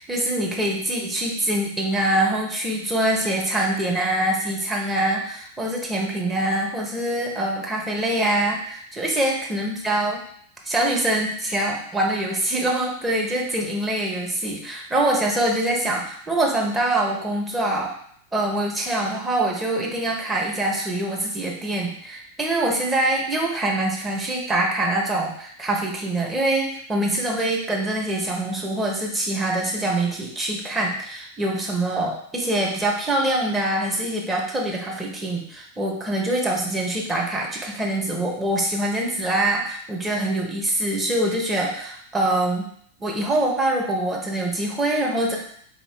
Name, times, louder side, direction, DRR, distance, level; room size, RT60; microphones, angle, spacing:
voice 1, 0.0-10.2 10.6-17.9 18.3-42.7 43.0-45.4, right 1 dB, 10° right, -2 dB, 1.0 m, -24 dB
4.2 x 2.5 x 3.5 m, 0.62 s
figure-of-eight pair, 90°, 0 cm